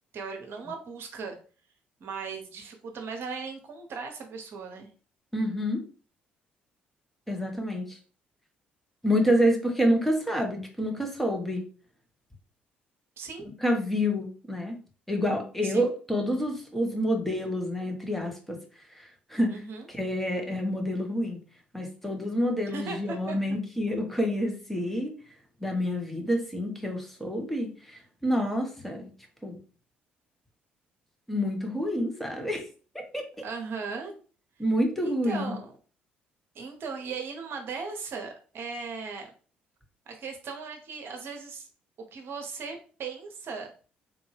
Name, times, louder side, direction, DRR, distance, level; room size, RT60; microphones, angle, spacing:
voice 1, 0.1-1.4 2.0-4.9 13.2-13.5 15.6-15.8 19.5-19.9 22.7-23.4 33.4-34.1 35.0-35.7 36.5-39.3 40.1-41.7 42.1-43.7, right 5 dB, 50° right, 3 dB, 0.9 m, -37 dB
voice 2, 5.3-5.8 7.3-8.0 9.0-11.6 13.6-14.8 15.1-18.6 18.9-19.6 19.9-21.4 21.7-25.1 25.6-29.1 29.4-29.6 31.3-32.7 33.1-33.4 34.6-35.5, equal, 5° left, 2 dB, 1.1 m, -28 dB
3.7 x 2.6 x 3.2 m, 0.39 s
figure-of-eight pair, 45°, 5 cm